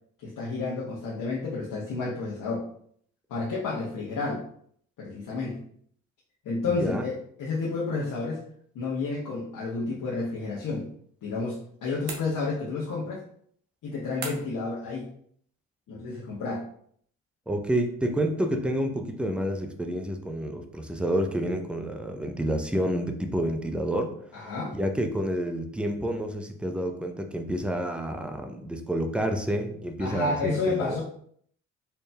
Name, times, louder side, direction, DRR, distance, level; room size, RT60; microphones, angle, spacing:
voice 1, 0.2-2.7 3.3-4.4 5.0-5.6 6.4-8.4 8.7-10.9 11.2-13.2 13.8-15.1 15.9-16.7 24.3-24.7 30.0-31.0, left 3 dB, 50° left, -6 dB, 1.1 m, -30 dB
voice 2, 6.7-7.0 17.5-24.5 24.7-31.0, right 1 dB, 5° right, 5 dB, 0.5 m, -29 dB
sound 1, 12.1-12.8 14.2-14.7, right 4 dB, 70° right, 1.0 m, -39 dB
4.3 x 3.2 x 2.2 m, 0.63 s
hypercardioid pair, 50°, 40 cm